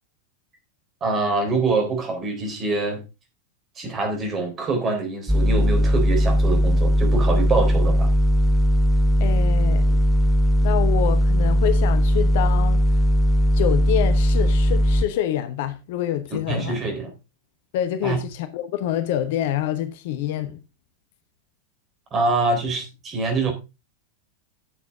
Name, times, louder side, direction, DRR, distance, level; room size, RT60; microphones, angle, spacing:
voice 1, 1.0-3.0 3.8-8.1 16.3-17.1 18.0-18.2 22.1-23.5, right 3 dB, 25° right, 3.7 m, -25 dB
sound 1, 5.3-15.1, equal, 10° right, 0.8 m, -18 dB
voice 2, 9.2-10.0 10.6-12.8 13.5-16.8 17.7-20.6, left 11 dB, 50° left, 1.0 m, -26 dB
11.0 x 7.3 x 3.6 m
figure-of-eight pair, 90°, 0 cm